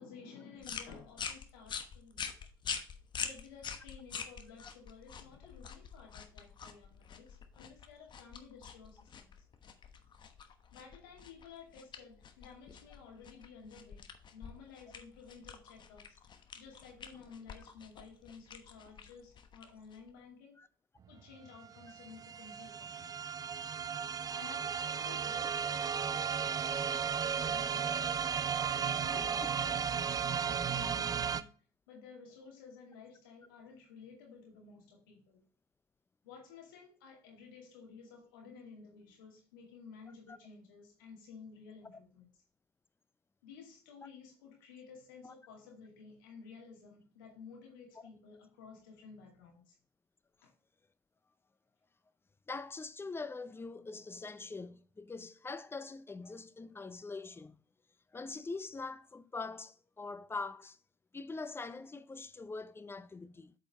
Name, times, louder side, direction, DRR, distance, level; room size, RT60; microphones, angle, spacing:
voice 1, 0.0-2.3 3.2-9.3 10.7-16.2 16.6-20.6 21.1-23.2 24.3-28.2 28.8-31.5 31.9-35.4 36.2-42.3 43.4-49.8, left 5 dB, 80° left, 2.4 m, -54 dB
sound 1, 0.6-20.2, left 6 dB, 45° left, 1.1 m, -46 dB
sound 2, 21.2-21.3 21.5-31.4, right 7 dB, 35° right, 0.5 m, -35 dB
voice 2, 29.0-29.3 40.3-40.4 45.2-45.3 52.5-57.6 58.1-60.8 61.1-63.5, left 3 dB, 20° left, 0.7 m, -43 dB
8.2 x 5.1 x 3.5 m
hypercardioid pair, 60°, 11 cm